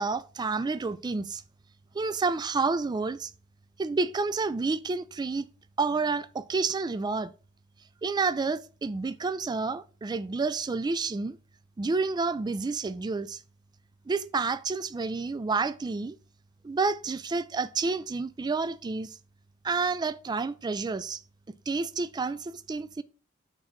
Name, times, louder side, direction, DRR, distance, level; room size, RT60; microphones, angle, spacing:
voice 1, 0.0-1.4 1.9-3.3 3.8-5.5 5.8-7.3 8.0-11.4 11.8-13.4 14.1-16.1 16.6-19.2 19.6-21.2 21.7-23.0, right 4 dB, 20° right, 0.3 m, -29 dB
6.5 x 3.6 x 6.0 m
head